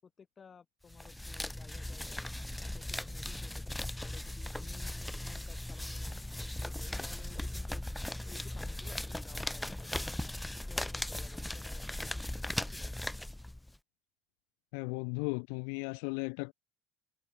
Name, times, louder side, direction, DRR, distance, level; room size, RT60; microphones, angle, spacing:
voice 1, 0.0-2.3 2.6-5.0 5.2-6.2 6.6-7.8 8.2-12.3 12.7-12.9, left 6 dB, 25° left, 4.9 m, -57 dB
sound 1, 0.9-13.8, left 1 dB, 5° left, 1.0 m, -38 dB
voice 2, 14.7-16.5, left 40 dB or more, 75° left, 1.0 m, -36 dB
cardioid pair, 140°, 0 cm